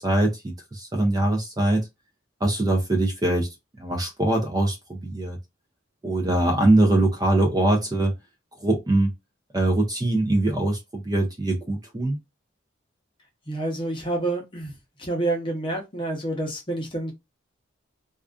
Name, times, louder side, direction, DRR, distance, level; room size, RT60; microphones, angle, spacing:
voice 1, 0.0-1.9 2.4-3.5 3.8-5.4 6.0-8.1 8.6-9.1 9.5-12.2, right 1 dB, 20° right, 0.4 m, -22 dB
voice 2, 13.5-14.7 15.0-17.1, right 2 dB, 25° left, 0.7 m, -28 dB
2.4 x 2.4 x 2.3 m
head